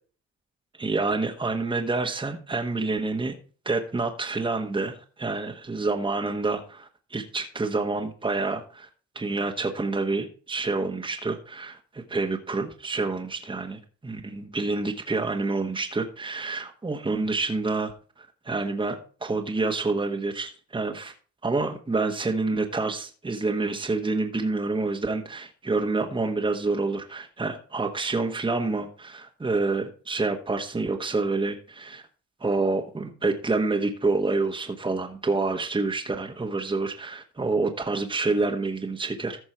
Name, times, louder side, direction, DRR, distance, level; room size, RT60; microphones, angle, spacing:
voice 1, 0.8-3.3 3.6-8.9 9.1-17.9 18.4-21.1 21.4-32.0 32.4-39.4, right 3 dB, 15° right, 3 dB, 1.3 m, -28 dB
14.5 x 5.3 x 4.4 m, 0.39 s
cardioid pair, 90°, 30 cm